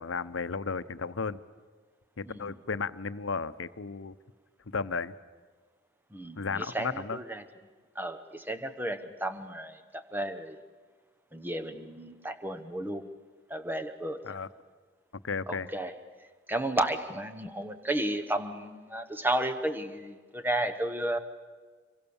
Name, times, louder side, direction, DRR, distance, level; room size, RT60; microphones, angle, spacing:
voice 1, 0.0-1.4 2.2-4.2 4.6-5.1 6.4-7.2 14.2-14.5 15.2-15.7, left 5 dB, 85° left, 14 dB, 0.8 m, -34 dB
voice 2, 6.1-7.4 7.9-10.6 11.3-13.1 13.5-14.3 15.5-15.9 16.5-21.2, right 1 dB, 10° right, 9 dB, 1.1 m, -33 dB
26.0 x 23.5 x 7.1 m, 1.5 s
head